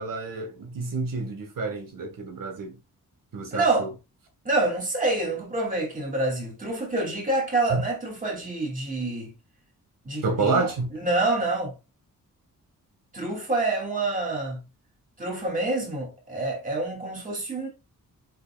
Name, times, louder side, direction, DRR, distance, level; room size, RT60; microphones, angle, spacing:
voice 1, 0.0-2.8 3.3-3.9 7.7-7.8 10.2-10.9, right 3 dB, 75° right, 1.6 m, -28 dB
voice 2, 3.5-3.9 4.4-9.3 10.0-10.7 10.9-11.7 13.1-14.6 15.2-17.7, right 2 dB, 25° right, 3.0 m, -27 dB
7.9 x 5.4 x 2.4 m
wide cardioid pair, 170°, 34 cm